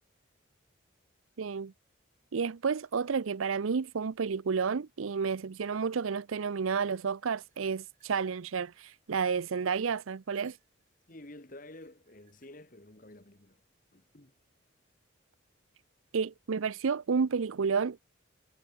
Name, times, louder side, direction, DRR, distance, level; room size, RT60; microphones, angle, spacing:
voice 1, 1.4-1.7 2.3-10.6 16.1-18.0, right 5 dB, 85° right, 0.5 m, -31 dB
sound 1, 7.5-11.0 11.6-12.5, right 9 dB, 40° right, 6.1 m, -69 dB
voice 2, 11.1-13.6 13.9-14.3, left 1 dB, 40° left, 1.9 m, -50 dB
head